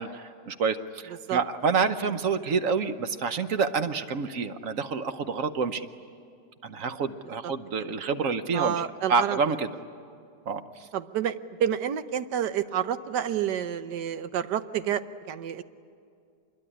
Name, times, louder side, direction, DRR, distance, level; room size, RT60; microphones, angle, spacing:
voice 1, 0.0-5.8 6.6-8.8 9.1-9.7 10.5-10.9, right 5 dB, 55° right, 9 dB, 1.1 m, -28 dB
voice 2, 8.5-9.4 10.9-15.6, right 9 dB, 85° right, 12 dB, 1.4 m, -29 dB
25.5 x 22.0 x 9.9 m, 2.4 s
omnidirectional pair, 1.8 m